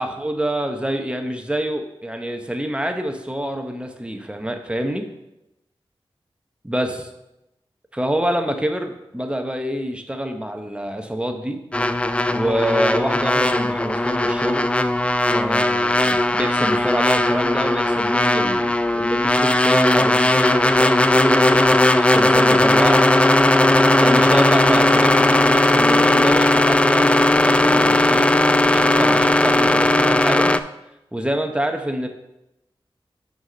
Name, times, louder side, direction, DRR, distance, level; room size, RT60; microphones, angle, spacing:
voice 1, 0.0-5.1 6.6-7.1 7.9-11.6 12.3-14.7 15.3-23.1 24.0-28.3 28.7-30.5 31.1-32.1, equal, 10° right, 5 dB, 0.9 m, -26 dB
sound 1, 11.7-30.6, left 1 dB, 10° left, 0.3 m, -17 dB
6.2 x 4.8 x 5.3 m, 0.90 s
wide cardioid pair, 75°, 10 cm